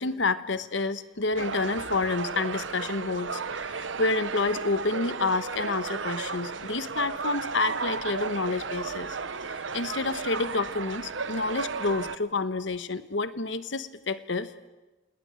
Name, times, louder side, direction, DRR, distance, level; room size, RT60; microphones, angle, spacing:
voice 1, 0.0-9.2 9.5-14.5, left 3 dB, 75° left, 13 dB, 1.2 m, -29 dB
sound 1, 1.3-12.2, right 5 dB, 80° right, 1.1 m, -34 dB
28.5 x 20.0 x 9.0 m, 1.1 s
head